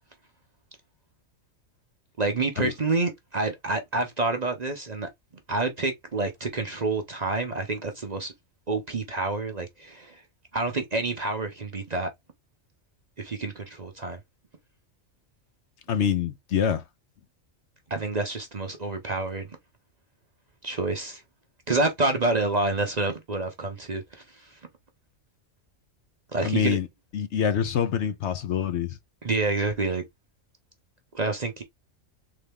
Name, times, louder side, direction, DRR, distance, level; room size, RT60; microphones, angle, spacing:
voice 1, 2.2-5.1 5.5-8.3 8.7-10.2 10.5-12.1 13.2-14.2 17.9-19.5 20.6-21.2 21.7-24.2 26.3-26.8 29.2-30.0 31.1-31.6, right 3 dB, 40° right, 0.8 m, -28 dB
voice 2, 15.9-16.8 26.4-26.9 27.1-29.0, left 8 dB, 65° left, 0.9 m, -25 dB
3.8 x 3.3 x 3.4 m
omnidirectional pair, 1.4 m